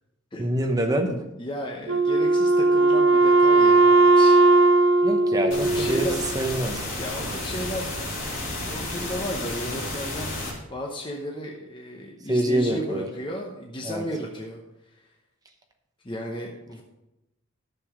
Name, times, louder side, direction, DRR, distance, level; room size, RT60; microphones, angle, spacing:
voice 1, 0.4-1.3 5.0-6.1 6.3-6.8 12.3-13.1 13.8-14.1, right 1 dB, 15° right, 4 dB, 0.9 m, -25 dB
voice 2, 1.4-4.4 5.4-6.2 7.0-7.9 8.6-10.3 10.7-15.1 16.0-16.8, equal, 20° left, 0 dB, 0.9 m, -34 dB
Wind instrument woodwind instrument, 1.9-6.4, right 2 dB, 60° right, 0.7 m, -18 dB
sound 1, 5.5-10.5, left 2 dB, 65° left, 3.9 m, -32 dB
10.5 x 7.0 x 5.0 m, 0.93 s
head